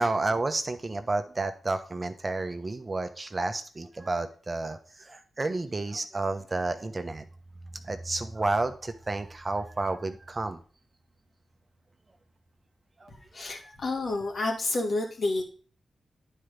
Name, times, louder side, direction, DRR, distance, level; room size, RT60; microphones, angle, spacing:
voice 1, 0.0-7.2 7.8-10.6 13.0-13.1 13.4-13.5, right 2 dB, 40° right, 8 dB, 1.0 m, -31 dB
voice 2, 13.3-15.4, left 2 dB, 65° left, 0 dB, 2.4 m, -29 dB
9.5 x 4.6 x 5.1 m, 0.41 s
supercardioid pair, 45°, 0 cm